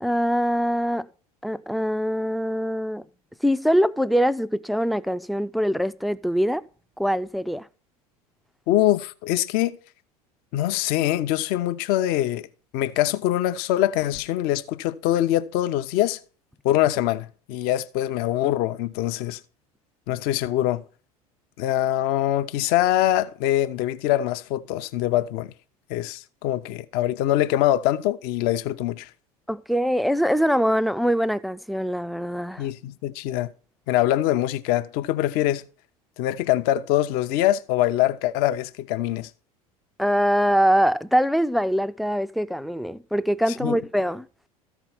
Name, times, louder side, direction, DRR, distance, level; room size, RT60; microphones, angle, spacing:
voice 1, 0.0-1.1 1.4-3.0 3.4-6.6 7.0-7.7 29.5-32.7 40.0-44.5, equal, ahead, 0.4 m, -23 dB
voice 2, 8.7-9.8 10.5-12.5 12.7-16.2 16.6-19.4 20.1-20.8 21.6-25.5 25.9-29.1 32.6-33.5 33.9-35.7 36.2-39.3 43.6-43.8, left 13 dB, 55° left, 0.7 m, -23 dB
14.0 x 4.6 x 5.9 m
hypercardioid pair, 80°, 19 cm